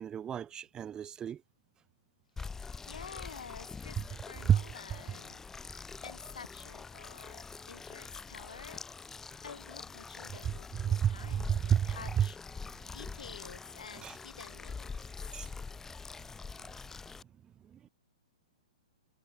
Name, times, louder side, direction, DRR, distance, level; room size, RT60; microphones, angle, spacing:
voice 1, 0.0-1.4 4.5-4.6 10.4-12.3 12.6-12.7 14.0-14.2 15.3-15.5 17.7-17.9, right 9 dB, 20° right, 1.9 m, -31 dB
voice 2, 2.4-5.4 6.0-8.8 9.4-12.4 12.9-15.5, left 6 dB, 85° left, 4.7 m, -50 dB
sound 1, 2.4-17.2, left 4 dB, 10° left, 1.6 m, -45 dB
hypercardioid pair, 125°, 4 cm